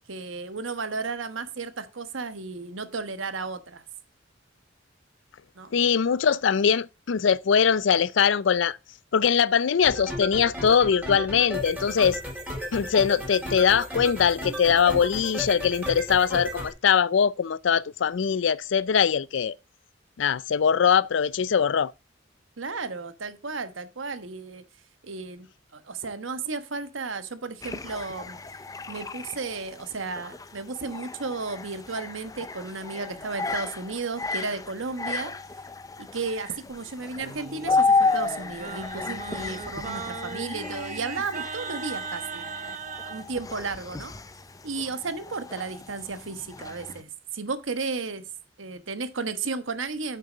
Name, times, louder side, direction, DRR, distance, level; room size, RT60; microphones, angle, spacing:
voice 1, 0.1-3.8 5.5-5.7 22.6-24.6 25.0-25.5 25.7-28.4 28.9-35.3 36.0-42.5 43.1-44.1 44.6-48.2 48.6-50.2, right 4 dB, 80° right, 1.2 m, -33 dB
voice 2, 5.7-8.8 9.1-12.2 12.7-19.6 20.2-21.9, left 7 dB, 70° left, 0.4 m, -22 dB
sound 1, 9.8-16.7, left 1 dB, 5° right, 4.7 m, -34 dB
sound 2, 27.6-47.0, left 4 dB, 20° left, 0.5 m, -32 dB
Singing, 37.2-43.2, right 5 dB, 40° right, 0.9 m, -38 dB
8.5 x 6.6 x 5.0 m
head